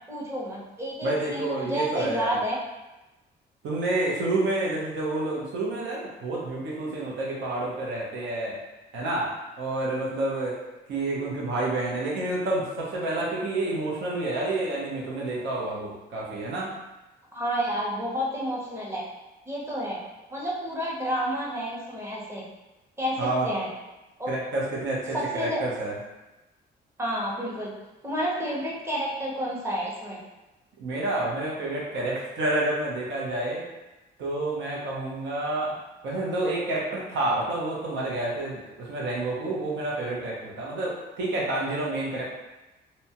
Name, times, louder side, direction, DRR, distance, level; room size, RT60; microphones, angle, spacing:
voice 1, 0.1-2.6 17.3-19.0 19.5-20.0 20.3-22.4 23.0-23.2 23.4-23.7 24.2-24.3 25.1-25.6 27.0-27.7 28.0-30.2, equal, 15° right, -5 dB, 0.7 m, -30 dB
voice 2, 1.0-2.4 3.6-8.6 8.9-9.3 9.6-10.6 10.9-16.7 23.2-23.5 24.3-26.0 30.8-33.6 34.2-35.7 36.0-42.2, right 2 dB, 85° right, -5 dB, 0.7 m, -29 dB
2.8 x 2.2 x 2.8 m, 1.0 s
cardioid pair, 125°, 18 cm